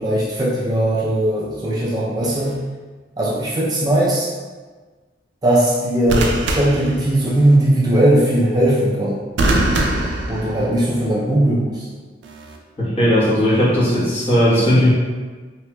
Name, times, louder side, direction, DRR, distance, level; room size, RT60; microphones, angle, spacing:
voice 1, 0.0-2.5 3.2-4.3 5.4-9.2 10.3-11.8, right 1 dB, 20° right, -6 dB, 0.4 m, -18 dB
sound 1, 2.2-2.6 6.1-7.6 9.4-11.0 12.2-12.6, right 1 dB, 85° right, 0.4 m, -23 dB
voice 2, 12.8-14.9, equal, 35° left, -10 dB, 1.1 m, -16 dB
3.1 x 2.9 x 2.2 m, 1.4 s
head